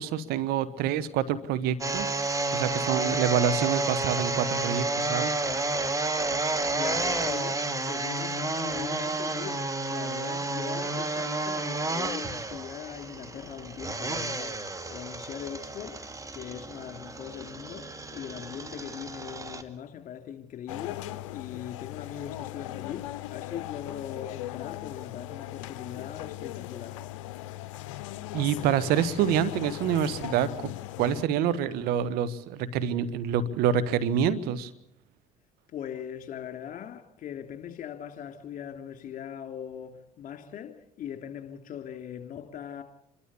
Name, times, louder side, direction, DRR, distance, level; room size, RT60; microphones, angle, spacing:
voice 1, 0.0-2.1 2.5-5.3 28.3-30.7 31.0-34.7, right 8 dB, 75° right, 1.5 m, -27 dB
sound 1, 1.8-19.6, right 2 dB, 20° right, 2.4 m, -31 dB
voice 2, 6.7-16.0 16.3-27.0 35.7-42.8, left 9 dB, 55° left, 3.3 m, -40 dB
sound 2, 20.7-31.3, left 15 dB, 90° left, 0.7 m, -39 dB
27.5 x 13.0 x 8.5 m
hypercardioid pair, 65°, 16 cm